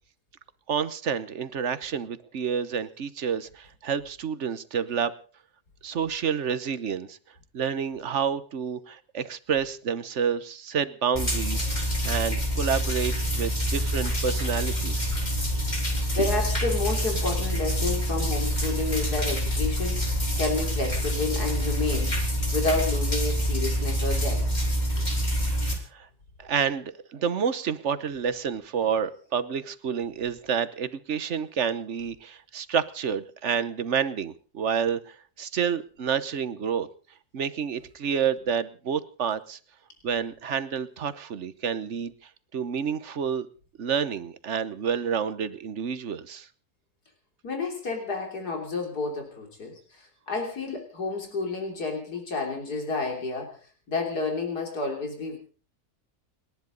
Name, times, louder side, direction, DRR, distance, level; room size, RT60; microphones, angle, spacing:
voice 1, 0.7-5.1 5.8-7.2 7.5-15.1 25.5-26.1 26.4-36.9 37.3-39.6 40.0-42.1 42.5-43.5 43.8-46.5, right 7 dB, 50° right, 14 dB, 1.2 m, -29 dB
sound 1, 11.1-25.7, equal, 25° left, 3.9 m, -26 dB
voice 2, 16.2-22.1 22.5-24.4 47.4-53.6 53.9-55.4, left 3 dB, 90° left, 1 dB, 3.8 m, -30 dB
30.0 x 10.5 x 3.9 m, 0.40 s
omnidirectional pair, 1.6 m